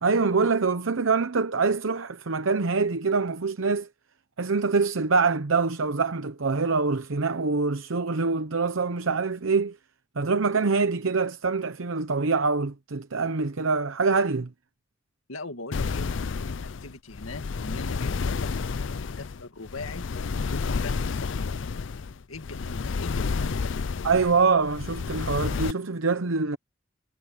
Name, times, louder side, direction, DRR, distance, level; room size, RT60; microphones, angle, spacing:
voice 1, 0.0-3.9 4.4-9.8 10.2-14.5 24.0-26.6, right 4 dB, 80° right, 0.8 m, -25 dB
voice 2, 15.3-20.1 20.4-21.5 22.3-23.7, left 3 dB, 85° left, 2.1 m, -41 dB
sound 1, 15.7-25.7, left 4 dB, 65° left, 0.5 m, -30 dB
head